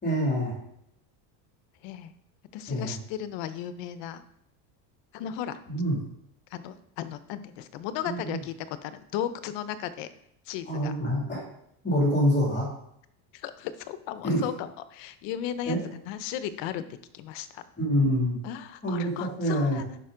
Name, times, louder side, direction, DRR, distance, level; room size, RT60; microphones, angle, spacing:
voice 1, 0.0-0.5 2.7-2.9 5.7-6.0 8.0-8.4 10.7-11.4 11.8-12.7 14.2-14.4 15.7-15.8 17.8-18.4 18.8-19.8, equal, 20° left, -3 dB, 2.5 m, -26 dB
voice 2, 1.8-2.1 2.5-4.2 5.1-5.6 6.5-10.1 10.5-10.9 13.3-16.8 17.1-17.6 18.4-20.0, left 10 dB, 60° left, 12 dB, 0.8 m, -35 dB
10.0 x 5.4 x 3.8 m, 0.75 s
cardioid pair, 155°, 49 cm